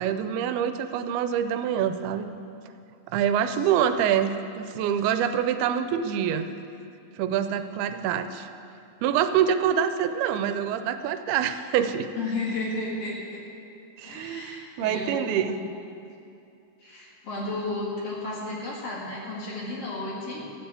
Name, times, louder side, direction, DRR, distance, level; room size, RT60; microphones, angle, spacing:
voice 1, 0.0-2.3 3.1-6.5 7.2-8.5 9.0-12.1 14.0-15.6, right 9 dB, 90° right, 9 dB, 2.5 m, -25 dB
voice 2, 12.2-13.4 14.0-15.6 16.8-20.4, left 2 dB, 45° left, -4 dB, 2.5 m, -33 dB
13.0 x 7.9 x 8.4 m, 2.6 s
omnidirectional pair, 4.4 m